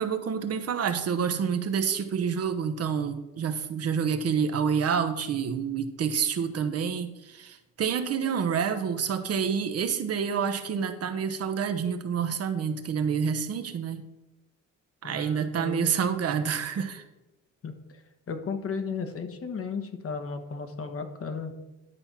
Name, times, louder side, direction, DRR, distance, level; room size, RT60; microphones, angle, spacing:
voice 1, 0.0-14.0 15.0-17.0, right 7 dB, 55° right, 9 dB, 0.9 m, -28 dB
voice 2, 15.0-15.9 17.6-17.7 18.3-21.5, left 5 dB, 50° left, 7 dB, 1.3 m, -34 dB
11.0 x 4.4 x 5.9 m, 1.0 s
cardioid pair, 90°, 30 cm